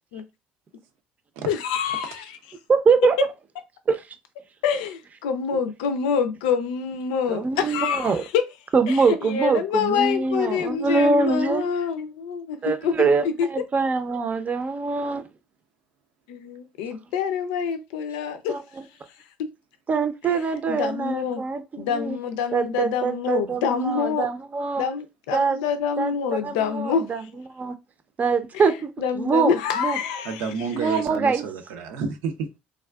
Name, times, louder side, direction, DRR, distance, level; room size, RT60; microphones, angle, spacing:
voice 1, 1.5-2.4 4.6-8.4 8.9-9.0 9.2-12.6 12.8-13.1 13.4-13.5 16.3-18.6 19.4-19.5 20.7-21.4 21.8-24.3 24.8-27.1 29.0-30.4, left 7 dB, 80° left, 0.5 m, -26 dB
voice 2, 2.7-3.2 3.9-4.1 7.3-8.2 8.7-11.7 12.6-15.2 16.9-17.0 18.5-18.9 19.9-22.2 22.5-24.9 25.3-25.6 26.0-27.8 28.2-30.0 30.8-31.4, right 4 dB, 35° right, 0.6 m, -24 dB
voice 3, 30.2-32.6, right 5 dB, 75° right, 0.6 m, -30 dB
3.4 x 2.3 x 2.3 m
hypercardioid pair, 70°, 4 cm